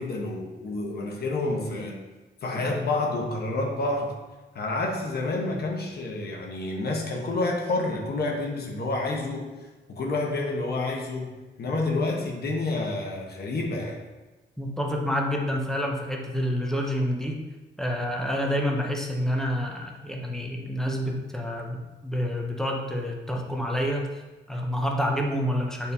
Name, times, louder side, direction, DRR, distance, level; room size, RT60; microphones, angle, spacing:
voice 1, 0.0-2.0 2.4-4.1 4.5-9.5 9.9-11.3 11.6-14.0, left 2 dB, 50° left, 0 dB, 1.0 m, -29 dB
voice 2, 14.6-17.4 17.8-24.1 24.5-25.9, equal, ahead, 0 dB, 0.6 m, -28 dB
8.8 x 4.2 x 2.7 m, 1.2 s
wide cardioid pair, 170°, 20 cm